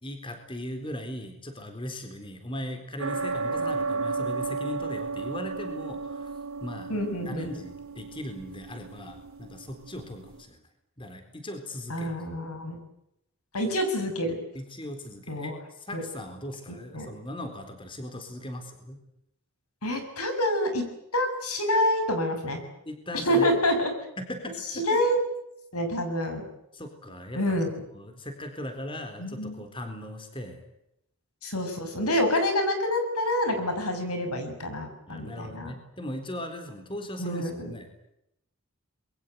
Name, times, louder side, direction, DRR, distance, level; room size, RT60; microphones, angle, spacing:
voice 1, 0.0-6.3 6.6-6.9 7.3-10.6 11.0-12.1 14.5-15.5 15.8-19.0 22.9-23.5 24.2-25.0 26.7-27.6 27.9-30.6 35.1-37.9, left 1 dB, 25° left, 7 dB, 4.0 m, -38 dB
sound 1, 3.0-10.4, right 4 dB, 75° right, 3.7 m, -34 dB
voice 2, 6.9-7.5 11.9-12.8 13.5-14.4 15.3-15.6 15.9-16.0 16.9-17.1 19.8-20.8 21.1-22.6 23.1-23.9 24.7-25.2 25.7-26.5 27.3-27.7 29.2-29.5 31.4-35.7 37.2-37.7, left 1 dB, 90° left, 7 dB, 6.5 m, -27 dB
26.5 x 22.5 x 8.2 m, 0.80 s
head